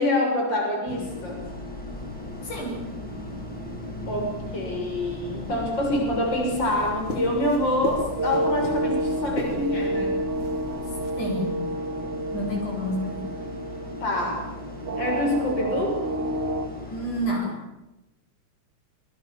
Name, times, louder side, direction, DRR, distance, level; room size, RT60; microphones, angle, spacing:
voice 1, 0.0-1.4 4.1-10.2 14.0-14.4 15.0-16.0, left 1 dB, 35° left, 1 dB, 7.4 m, -26 dB
sound 1, 0.9-17.3, left 1 dB, 5° left, 7.3 m, -38 dB
sound 2, 1.9-11.1, equal, 20° left, 3.3 m, -39 dB
voice 2, 2.4-2.8 11.2-11.6 12.3-13.2 16.9-17.6, equal, 80° left, 0 dB, 9.4 m, -29 dB
sound 3, 5.8-16.7, right 2 dB, 35° right, 2.9 m, -31 dB
26.5 x 24.0 x 7.4 m, 0.97 s
omnidirectional pair, 3.5 m